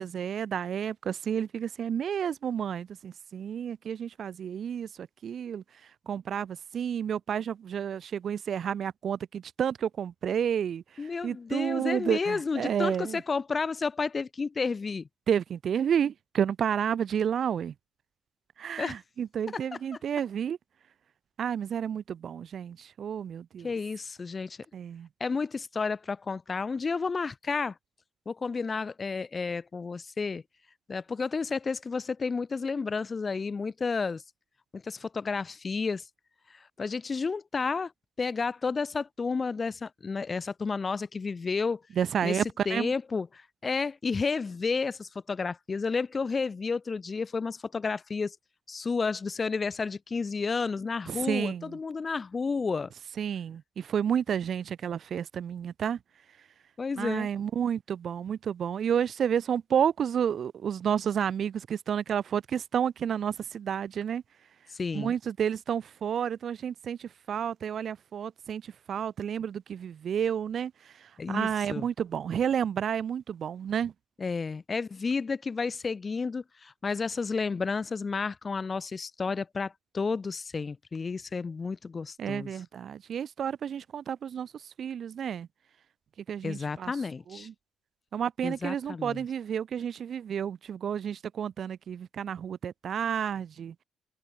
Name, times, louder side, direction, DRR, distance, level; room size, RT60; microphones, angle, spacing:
voice 1, 0.0-5.6 6.1-13.2 15.3-17.7 18.6-20.6 21.4-23.7 24.7-25.1 42.0-42.9 51.1-51.8 53.2-56.0 57.0-64.2 64.9-73.9 82.2-85.5 86.3-86.9 87.3-87.5 88.1-93.7, right 8 dB, 60° right, 0.7 m, -31 dB
voice 2, 11.0-15.1 18.8-19.0 19.5-19.6 23.6-24.6 25.2-27.7 28.2-30.4 30.9-34.2 34.7-36.0 36.5-37.9 38.2-41.8 42.2-42.4 42.6-48.3 48.7-52.9 56.8-57.3 64.7-65.1 71.2-71.8 74.2-82.5 86.4-87.5 88.4-89.2, left 4 dB, 35° left, 4.9 m, -31 dB
cardioid pair, 90°, 0 cm